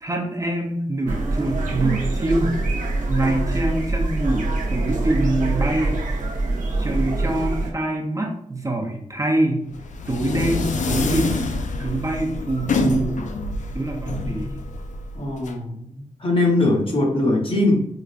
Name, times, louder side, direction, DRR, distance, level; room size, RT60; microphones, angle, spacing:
voice 1, 0.0-2.6 3.1-6.0 6.8-9.7 10.1-11.4 11.8-13.2 13.7-14.7, right 1 dB, 25° right, 0 dB, 0.6 m, -24 dB
sound 1, 1.1-7.7, right 2 dB, 75° right, 0.7 m, -24 dB
sound 2, 9.7-15.5, left 3 dB, 65° left, 0.4 m, -26 dB
voice 2, 15.1-17.9, left 2 dB, 40° left, 0 dB, 1.0 m, -21 dB
4.7 x 2.1 x 2.5 m, 0.71 s
wide cardioid pair, 80°, 13 cm